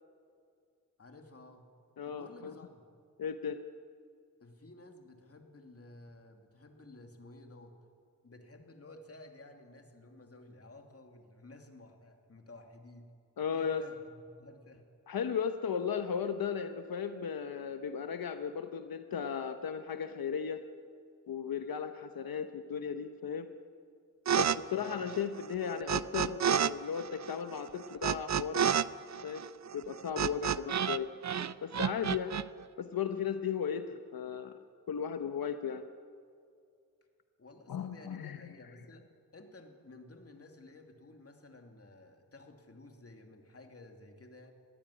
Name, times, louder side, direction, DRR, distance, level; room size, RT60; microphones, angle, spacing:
voice 1, 1.0-1.7 2.0-2.8 4.4-7.8 8.2-13.1 13.5-14.8 24.7-25.0 37.4-44.5, left 2 dB, 40° left, 4 dB, 2.7 m, -53 dB
voice 2, 2.0-2.5 3.2-3.6 13.4-13.8 15.1-20.6 21.3-23.5 24.4-28.7 29.2-29.4 29.7-31.1 31.6-32.3 32.8-34.5 34.9-35.8 37.7-38.4, left 7 dB, 85° left, 8 dB, 1.0 m, -36 dB
sound 1, 24.3-24.6 24.8-26.7 27.0-31.0 31.2-32.4, right 8 dB, 50° right, 0.6 m, -30 dB
20.0 x 15.5 x 10.0 m, 2.3 s
wide cardioid pair, 90°, 35 cm